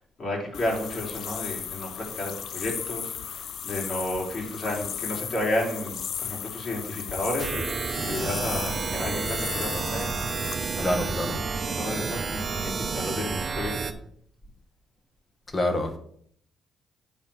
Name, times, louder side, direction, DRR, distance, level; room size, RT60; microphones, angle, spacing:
voice 1, 0.0-13.9, left 1 dB, 50° left, -2 dB, 3.9 m, -32 dB
sound 1, 0.5-10.5, left 8 dB, 70° left, 0.6 m, -36 dB
sound 2, 7.4-13.9, right 5 dB, 45° right, 0.8 m, -30 dB
voice 2, 10.8-11.4 15.5-16.0, left 1 dB, 30° left, 6 dB, 1.7 m, -26 dB
8.8 x 4.1 x 7.1 m, 0.64 s
cardioid pair, 90°, 0 cm